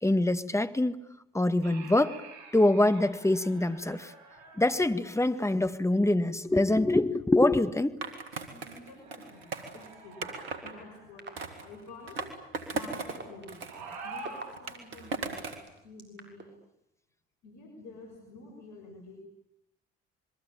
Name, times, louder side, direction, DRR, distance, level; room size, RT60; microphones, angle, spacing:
voice 1, 0.0-1.0 1.3-2.2 2.5-4.1 4.6-8.0, left 2 dB, 10° left, 11 dB, 1.9 m, -24 dB
sound 1, 1.6-5.8 8.6-11.3 13.6-14.4, right 4 dB, 70° right, 6.8 m, -47 dB
Skateboard, 8.0-10.7 11.4-13.2 13.5-15.7, right 4 dB, 90° right, 2.5 m, -38 dB
voice 2, 8.5-9.5 9.7-10.2 10.6-11.3 11.6-12.2 12.7-16.5 17.4-19.2, left 2 dB, 70° left, 3 dB, 6.1 m, -49 dB
sound 2, 8.7-8.8 9.5-9.6 10.2-10.5 11.2-11.4 12.2-12.3 12.9-15.0 15.7-16.4, right 3 dB, 40° right, 6.8 m, -42 dB
27.5 x 22.5 x 8.9 m, 0.81 s
hypercardioid pair, 50°, 29 cm